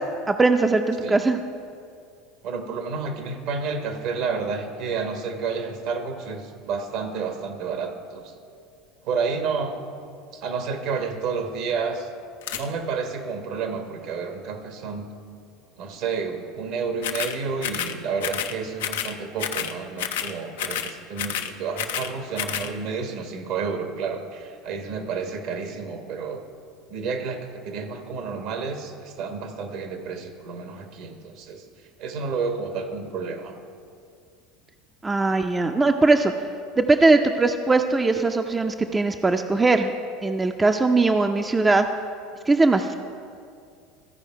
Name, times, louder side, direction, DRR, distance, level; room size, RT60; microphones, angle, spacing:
voice 1, 0.3-1.4 35.0-36.3 36.8-39.9 40.2-41.9 42.5-42.9, right 3 dB, 20° right, 6 dB, 0.5 m, -20 dB
voice 2, 2.4-8.3 9.0-9.8 10.3-12.1 12.5-15.1 15.8-26.5 26.9-31.6 32.0-33.5, right 5 dB, 65° right, 6 dB, 1.1 m, -30 dB
sound 1, 12.4-12.7 17.0-17.4 17.6-17.9 18.2-18.5 18.8-19.1 19.4-19.7 20.0-20.3 20.6-20.9 21.2-22.1 22.4-22.7, left 9 dB, 80° left, 0.5 m, -29 dB
14.0 x 4.9 x 4.7 m, 2.3 s
hypercardioid pair, 85°, 0 cm